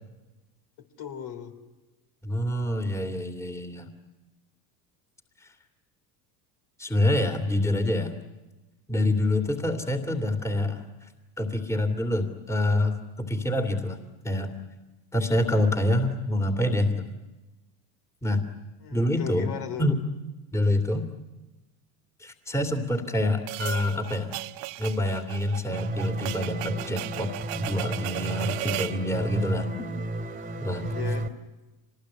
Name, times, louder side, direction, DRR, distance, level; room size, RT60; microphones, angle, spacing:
voice 1, 1.0-1.6 18.8-19.9 29.8-29.9 30.9-31.3, left 7 dB, 50° left, 6 dB, 3.4 m, -36 dB
voice 2, 2.2-3.9 6.8-8.1 8.9-10.8 11.4-14.0 14.2-14.5 15.1-17.1 18.2-18.4 18.9-19.5 19.8-20.0 20.5-21.1 22.2-24.3 24.8-29.7 30.6-30.9, left 1 dB, 5° left, 6 dB, 2.6 m, -26 dB
sound 1, 23.5-29.0, right 19 dB, 65° right, 1.2 m, -36 dB
sound 2, 25.7-31.3, right 1 dB, 15° right, 2.2 m, -32 dB
25.5 x 20.5 x 9.7 m, 1.1 s
hypercardioid pair, 85°, 50 cm